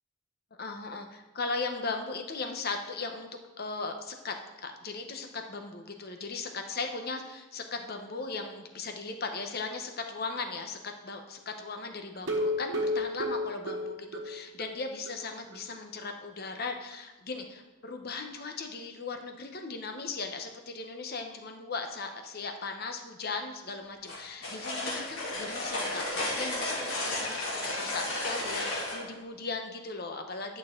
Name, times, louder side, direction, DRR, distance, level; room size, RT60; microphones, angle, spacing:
voice 1, 0.6-3.3 3.6-30.6, left 4 dB, 45° left, 5 dB, 0.9 m, -38 dB
sound 1, 12.2-14.7 15.1-15.2 15.5-15.6 16.0-16.1, left 1 dB, 60° right, 1.4 m, -31 dB
sound 2, 24.1-29.0, left 2 dB, 70° left, 2.9 m, -33 dB
11.5 x 6.4 x 3.8 m, 1.1 s
head